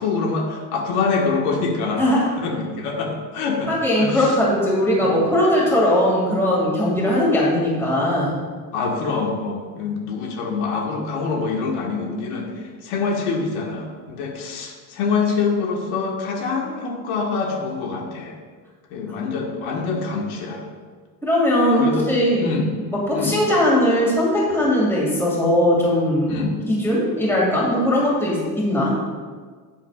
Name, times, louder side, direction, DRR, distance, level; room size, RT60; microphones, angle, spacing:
voice 1, 0.0-2.1 2.4-4.4 5.0-5.2 8.7-18.3 18.9-20.6 21.8-22.1 22.4-22.7 23.1-23.4 26.3-26.5, left 4 dB, 80° left, 0 dB, 1.7 m, -25 dB
voice 2, 2.0-2.3 3.7-8.3 21.2-22.5 22.9-26.4 26.7-29.0, left 1 dB, 5° left, -6 dB, 2.4 m, -19 dB
12.5 x 9.3 x 2.5 m, 1.5 s
cardioid pair, 170°, 43 cm